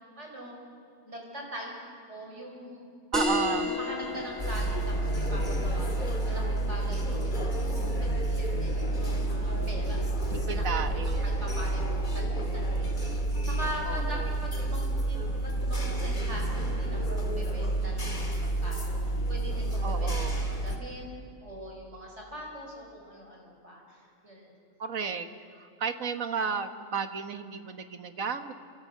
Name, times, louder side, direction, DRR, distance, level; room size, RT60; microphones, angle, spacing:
voice 1, 0.2-0.6 1.0-1.7 2.1-2.9 3.5-10.0 10.4-13.1 13.5-21.0 21.4-24.5, equal, 55° right, 0 dB, 5.9 m, -42 dB
sound 1, 3.1-8.2, left 2 dB, ahead, 5.3 m, -35 dB
voice 2, 3.1-3.7 10.5-11.3 13.9-14.3 19.8-20.5 24.8-25.3 25.5-28.5, right 5 dB, 80° right, 8 dB, 1.8 m, -33 dB
sound 2, 4.0-10.1, left 3 dB, 75° left, 1.9 m, -45 dB
sound 3, 4.4-20.8, right 2 dB, 35° left, 2.6 m, -29 dB
28.5 x 25.0 x 6.8 m, 2.4 s
omnidirectional pair, 1.4 m